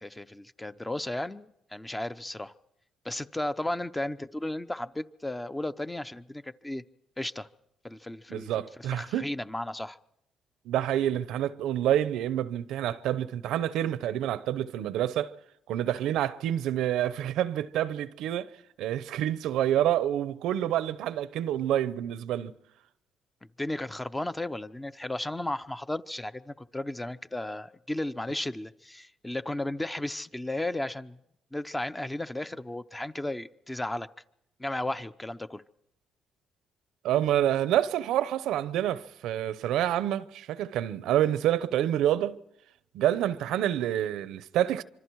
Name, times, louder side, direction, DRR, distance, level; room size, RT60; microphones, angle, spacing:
voice 1, 0.0-2.5 3.0-6.8 7.2-7.5 7.8-10.0 23.6-31.2 31.5-34.1 34.6-35.6, left 1 dB, 10° left, 0.8 m, -34 dB
voice 2, 8.3-9.3 10.7-15.3 15.7-18.5 18.8-22.5 37.0-42.4 42.9-44.8, right 11 dB, 90° right, 0.8 m, -28 dB
26.0 x 25.0 x 4.7 m
cardioid pair, 90°, 0 cm